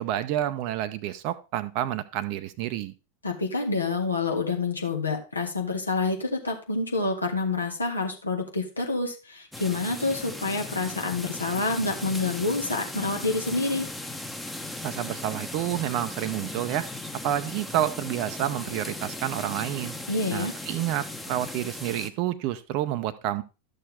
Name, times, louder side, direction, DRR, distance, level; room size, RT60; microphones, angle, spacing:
voice 1, 0.0-2.9 14.8-16.9 17.2-20.0 20.3-23.4, right 12 dB, 45° right, 12 dB, 0.6 m, -29 dB
voice 2, 3.2-13.9 20.1-20.5, left 3 dB, 80° left, 3 dB, 1.9 m, -28 dB
sound 1, 9.5-22.1, left 2 dB, 5° left, 0.9 m, -37 dB
12.0 x 6.6 x 3.6 m, 0.30 s
figure-of-eight pair, 90°, 0 cm